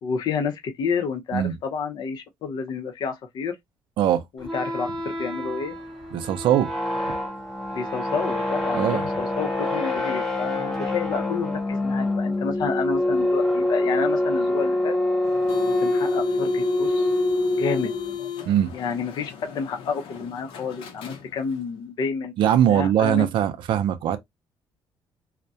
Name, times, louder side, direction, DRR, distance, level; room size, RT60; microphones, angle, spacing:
voice 1, 0.0-3.6 4.3-4.9 5.2-5.8 7.7-15.0 15.6-17.1 17.5-17.9 18.7-23.3, left 5 dB, 50° left, 0.6 m, -30 dB
sound 1, 4.4-18.2, left 1 dB, 5° left, 0.6 m, -25 dB
voice 2, 6.1-6.7 8.7-9.0 18.5-18.7 22.4-24.2, right 10 dB, 65° right, 0.4 m, -21 dB
sound 2, 15.2-21.7, left 9 dB, 85° left, 0.7 m, -35 dB
2.3 x 2.1 x 2.6 m
cardioid pair, 175°, 9 cm